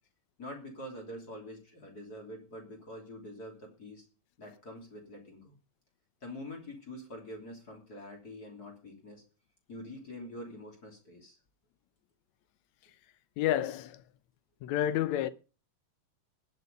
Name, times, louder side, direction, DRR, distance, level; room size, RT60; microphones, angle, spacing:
voice 1, 0.4-4.0 4.4-5.6 6.2-9.2 9.7-11.4, left 1 dB, 30° left, 3.3 m, -45 dB
voice 2, 13.4-14.0 14.6-15.3, left 12 dB, 75° left, 1.8 m, -29 dB
20.0 x 6.8 x 5.3 m
omnidirectional pair, 3.9 m